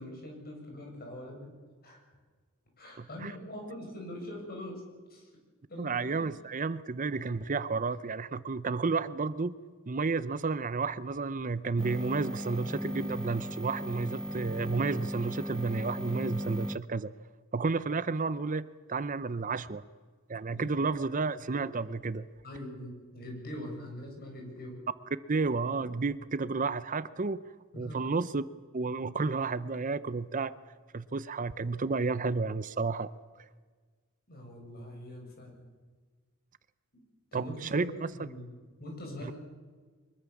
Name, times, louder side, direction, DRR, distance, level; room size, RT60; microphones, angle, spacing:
voice 1, 0.0-1.5 1.8-2.0 2.8-4.8 5.1-5.3 5.7-6.2 20.4-20.7 22.4-24.8 27.7-28.1 34.3-35.6 36.9-37.0 37.3-38.5 38.8-39.3, left 1 dB, 45° left, 1 dB, 7.9 m, -43 dB
voice 2, 3.0-3.3 5.8-9.5 9.9-17.1 17.5-19.8 20.3-22.2 25.3-27.4 27.8-28.4 28.7-30.5 30.9-33.1 33.4-33.5 37.3-38.1 39.2-39.3, right 4 dB, 40° right, 15 dB, 0.7 m, -31 dB
sound 1, 11.8-16.8, equal, 5° left, 0.8 m, -37 dB
24.0 x 22.5 x 7.2 m, 1.5 s
head